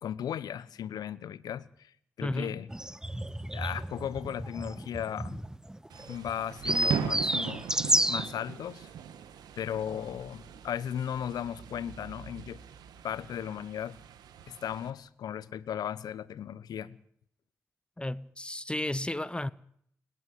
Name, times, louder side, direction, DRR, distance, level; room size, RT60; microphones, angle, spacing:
voice 1, 0.0-1.9 2.2-2.7 3.5-5.4 6.1-7.6 8.0-8.9 9.6-12.6 13.0-14.0 14.5-17.0, left 9 dB, 75° left, 1.1 m, -36 dB
voice 2, 2.2-2.6 18.0-19.5, left 1 dB, 15° left, 1.0 m, -33 dB
sound 1, 2.7-8.3, right 1 dB, 10° right, 1.4 m, -31 dB
Thunder / Rain, 5.9-14.9, right 8 dB, 85° right, 2.0 m, -40 dB
29.5 x 11.5 x 9.7 m
supercardioid pair, 45°, 7 cm